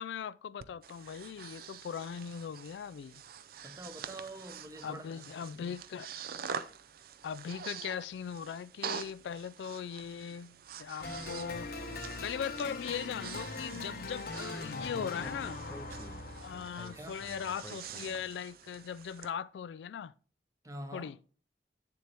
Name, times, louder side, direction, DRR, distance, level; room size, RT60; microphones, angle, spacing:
voice 1, 0.0-3.2 4.8-6.3 7.2-11.7 12.2-15.6 16.4-20.1 20.9-21.2, left 7 dB, 75° left, 0.3 m, -39 dB
Breathing, 0.6-19.3, right 7 dB, 55° right, 0.5 m, -46 dB
voice 2, 3.6-5.0 16.9-17.2 20.6-21.1, right 1 dB, 20° right, 0.8 m, -45 dB
sound 1, 11.0-17.8, left 3 dB, 55° left, 0.9 m, -41 dB
Speech, 14.9-18.3, left 1 dB, 10° left, 0.5 m, -50 dB
8.9 x 7.0 x 2.9 m
head